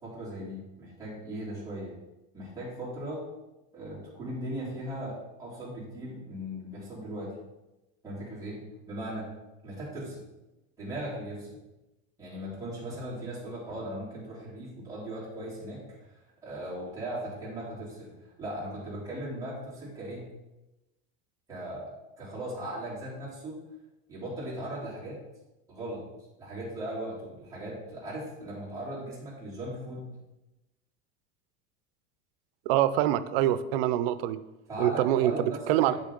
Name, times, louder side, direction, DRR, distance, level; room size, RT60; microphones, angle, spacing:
voice 1, 0.0-1.9 2.3-3.3 3.7-7.4 8.0-9.3 9.6-10.2 10.8-11.6 12.2-16.1 16.4-20.3 21.5-21.9 22.2-23.6 24.1-25.2 25.7-26.0 26.4-30.1 34.7-36.0, right 1 dB, 10° right, -9 dB, 3.1 m, -38 dB
voice 2, 32.7-34.4 34.8-35.3 35.7-36.0, right 13 dB, 85° right, 14 dB, 0.6 m, -25 dB
8.3 x 6.6 x 3.8 m, 1.0 s
cardioid pair, 165°, 29 cm